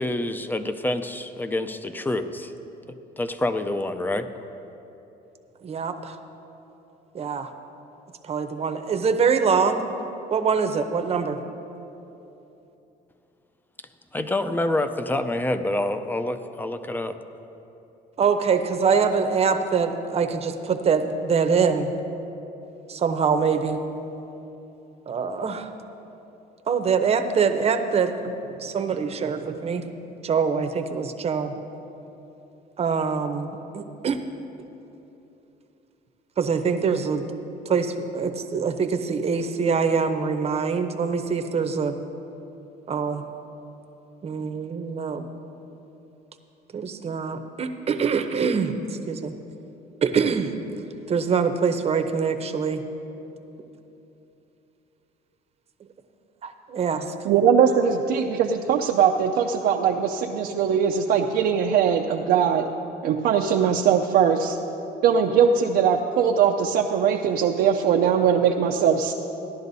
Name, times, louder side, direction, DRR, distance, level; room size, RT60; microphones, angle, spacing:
voice 1, 0.0-2.5 3.2-4.3 14.1-17.2, left 1 dB, 10° left, 10 dB, 0.5 m, -27 dB
voice 2, 5.6-6.2 7.1-7.5 8.3-9.8 10.3-11.4 18.2-21.9 22.9-23.8 25.1-25.7 26.7-29.8 30.2-31.5 32.8-34.2 36.4-37.2 37.7-42.0 42.9-43.2 44.2-45.2 46.7-48.7 49.1-49.3 50.0-50.5 51.1-52.8 56.4-57.1, right 5 dB, 35° right, 8 dB, 0.7 m, -24 dB
voice 3, 57.2-62.6 63.0-64.6 65.0-69.1, right 7 dB, 70° right, 1 dB, 0.5 m, -21 dB
16.5 x 11.0 x 2.7 m, 3.0 s
cardioid pair, 110°, 17 cm